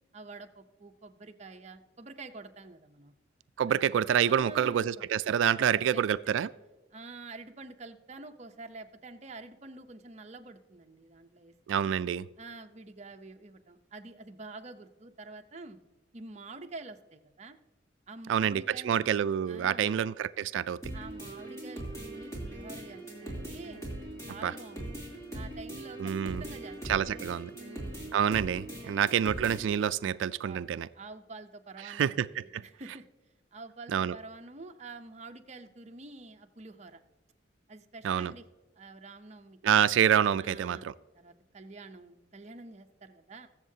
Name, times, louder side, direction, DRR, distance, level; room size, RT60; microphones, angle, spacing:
voice 1, 0.1-3.1 3.7-3.8 4.3-4.9 5.6-6.3 6.9-11.9 12.4-15.8 16.1-17.6 18.1-19.0 19.5-20.0 20.9-23.9 24.3-27.2 27.5-28.0 28.8-29.1 30.1-30.6 30.9-33.1 33.5-37.0 37.7-38.4 38.8-39.6 40.4-40.8 41.1-43.5, right 3 dB, 35° right, 5 dB, 0.7 m, -47 dB
voice 2, 3.6-6.5 11.7-12.3 18.3-20.8 24.4-24.5 26.0-26.4 26.9-27.5 28.1-30.9 31.9-32.6 33.9-34.1 38.0-38.3 39.6-40.9, right 9 dB, 80° right, 17 dB, 0.3 m, -27 dB
sound 1, 20.8-29.8, right 1 dB, 15° left, 3.0 m, -41 dB
22.0 x 7.3 x 2.8 m, 1.2 s
head